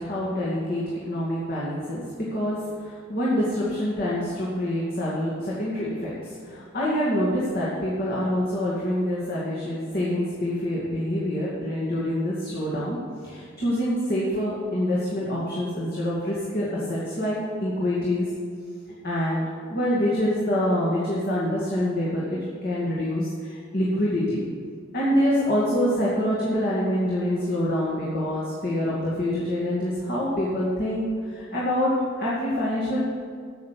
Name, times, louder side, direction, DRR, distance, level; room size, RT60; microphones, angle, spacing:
voice 1, 0.0-2.0 2.3-18.3 19.0-24.5 24.9-31.9 32.2-33.0, left 1 dB, 50° left, -7 dB, 2.3 m, -26 dB
9.3 x 7.7 x 8.5 m, 2.1 s
head